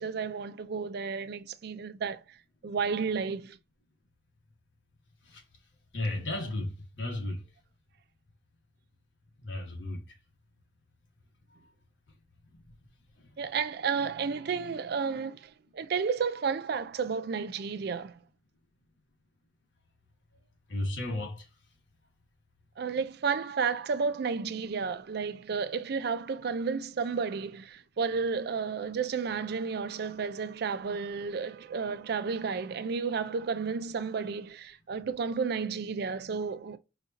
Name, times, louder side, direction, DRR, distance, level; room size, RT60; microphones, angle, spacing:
voice 1, 0.0-2.2 2.6-3.6 13.4-18.2 22.8-36.8, right 5 dB, 55° right, 0.4 m, -32 dB
voice 2, 5.9-7.4 9.4-10.0 12.5-12.6 13.2-13.3 20.7-21.5, left 1 dB, 70° left, 1.7 m, -34 dB
4.9 x 2.7 x 2.8 m
head